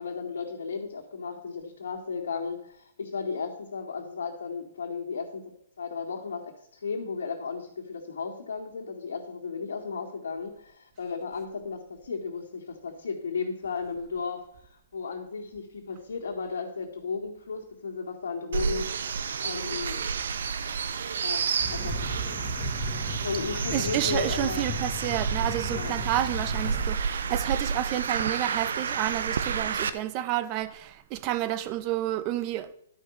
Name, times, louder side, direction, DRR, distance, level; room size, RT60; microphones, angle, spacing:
voice 1, 0.0-20.0 21.2-21.5 21.7-22.1 23.2-24.7 25.7-26.0, left 5 dB, 75° left, 2.3 m, -35 dB
sound 1, 18.5-29.9, right 6 dB, 70° right, 0.7 m, -30 dB
sound 2, 21.6-26.9, equal, 10° left, 1.5 m, -35 dB
voice 2, 23.7-32.7, right 13 dB, 30° right, 0.8 m, -30 dB
11.5 x 5.6 x 6.4 m
hypercardioid pair, 140°, 0 cm